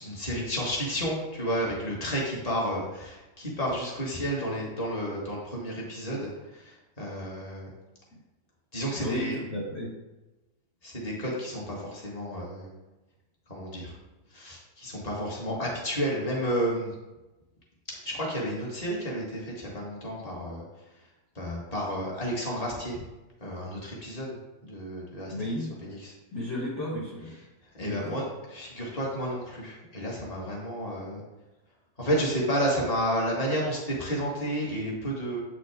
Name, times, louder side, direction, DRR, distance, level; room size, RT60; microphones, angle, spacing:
voice 1, 0.0-7.7 8.7-9.4 10.8-12.7 13.5-13.9 14.3-16.9 17.9-20.6 21.4-23.0 23.4-24.4 24.6-25.5 25.9-26.1 27.7-28.2 28.5-31.2 32.0-35.4, equal, 25° left, -3 dB, 1.8 m, -31 dB
voice 2, 9.0-9.9 15.5-15.6 25.3-25.7 26.3-27.3 27.8-28.2, left 1 dB, 45° left, -6 dB, 1.7 m, -33 dB
8.0 x 6.0 x 3.6 m, 1.1 s
omnidirectional pair, 1.7 m